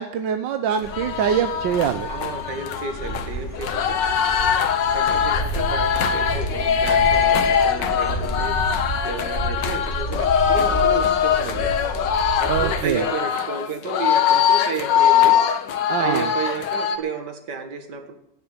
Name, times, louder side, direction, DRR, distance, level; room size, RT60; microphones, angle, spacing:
voice 1, 0.0-2.1 12.5-13.1 15.9-16.3, right 8 dB, 90° right, 8 dB, 1.5 m, -24 dB
sound 1, 0.8-12.8, right 1 dB, 40° left, 4.1 m, -31 dB
sound 2, 0.9-17.0, left 8 dB, 80° left, 1.7 m, -22 dB
voice 2, 2.1-4.0 4.9-8.6 9.0-11.7 12.4-15.4 16.0-18.1, right 5 dB, 70° right, 6 dB, 2.3 m, -31 dB
16.5 x 7.1 x 9.0 m, 0.74 s
omnidirectional pair, 1.9 m